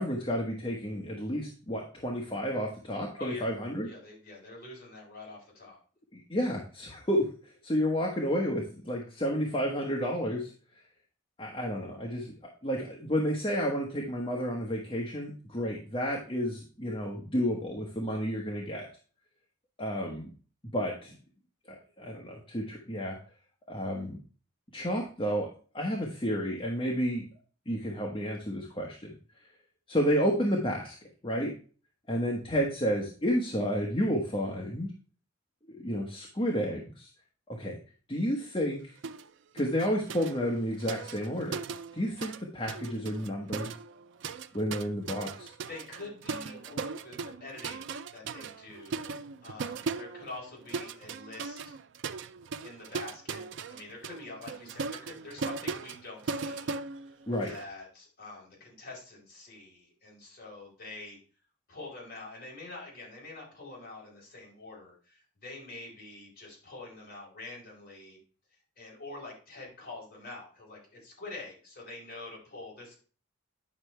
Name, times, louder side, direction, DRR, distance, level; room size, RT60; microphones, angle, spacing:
voice 1, 0.0-3.9 6.1-10.5 11.4-18.9 19.8-20.3 20.7-21.2 21.7-23.2 23.7-24.2 24.7-25.5 25.7-27.2 27.7-29.1 29.9-30.9 31.2-31.5 32.1-34.9 35.7-37.1 37.6-37.8 38.1-39.0 39.5-41.6 41.9-43.7 44.5-45.5 57.3-57.5, equal, 25° left, -1 dB, 1.2 m, -31 dB
voice 2, 3.2-3.5 3.8-5.8 45.7-51.7 52.6-56.8 57.1-57.2 57.5-61.2 61.7-68.2 68.5-73.0, left 2 dB, 45° left, -3 dB, 4.5 m, -46 dB
sound 1, 39.0-39.3 39.6-42.4 42.7-57.6, right 4 dB, 60° right, 0.4 m, -38 dB
9.7 x 6.0 x 3.3 m, 0.39 s
head